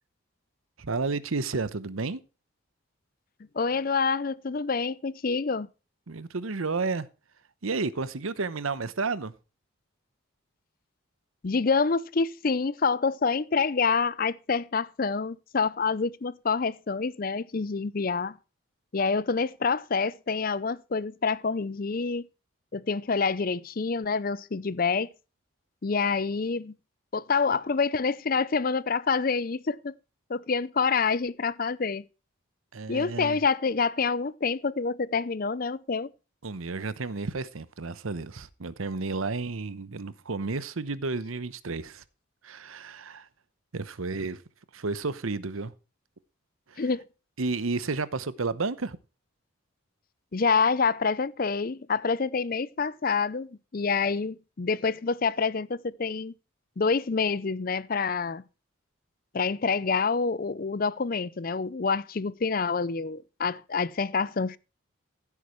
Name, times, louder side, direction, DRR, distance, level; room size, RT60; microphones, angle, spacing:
voice 1, 0.8-2.2 6.1-7.1 7.6-9.3 32.7-33.4 36.4-42.0 42.4-43.3 43.7-44.4 44.7-45.7 46.7-46.8 47.4-49.0, right 3 dB, 85° right, 0.9 m, -31 dB
voice 2, 3.5-5.7 11.4-18.4 18.9-22.3 22.7-25.1 25.8-26.7 27.1-29.9 30.3-32.0 32.9-36.1 46.8-47.0 50.3-56.3 56.8-58.4 59.3-64.6, left 5 dB, 45° left, 0.5 m, -27 dB
16.0 x 8.3 x 3.1 m
head